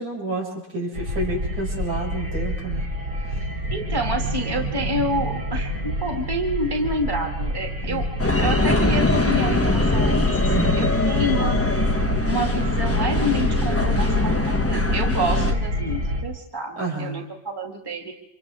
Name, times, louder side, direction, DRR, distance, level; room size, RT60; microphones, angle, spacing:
voice 1, 0.0-2.8 3.2-3.3 7.8-8.0 10.5-10.7 16.8-17.3, right 2 dB, 80° right, -3 dB, 6.9 m, -29 dB
sound 1, 0.9-16.2, equal, 55° right, 3.3 m, -27 dB
voice 2, 3.7-8.1 8.4-12.0 12.3-18.1, equal, 10° right, 1 dB, 2.2 m, -28 dB
sound 2, 8.2-15.5, left 2 dB, 10° left, 0.7 m, -22 dB
30.0 x 26.0 x 3.6 m, 0.85 s
omnidirectional pair, 2.1 m